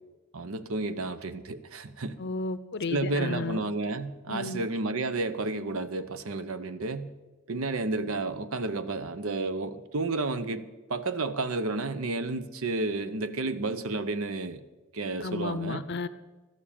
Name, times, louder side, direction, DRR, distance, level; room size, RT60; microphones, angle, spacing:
voice 1, 0.3-2.2 2.9-7.1 7.5-14.6 14.9-15.8, right 3 dB, 70° right, 12 dB, 0.8 m, -31 dB
voice 2, 2.2-3.6 4.3-4.6 15.2-16.1, left 3 dB, 50° left, 14 dB, 0.6 m, -33 dB
13.0 x 7.3 x 8.5 m, 1.2 s
head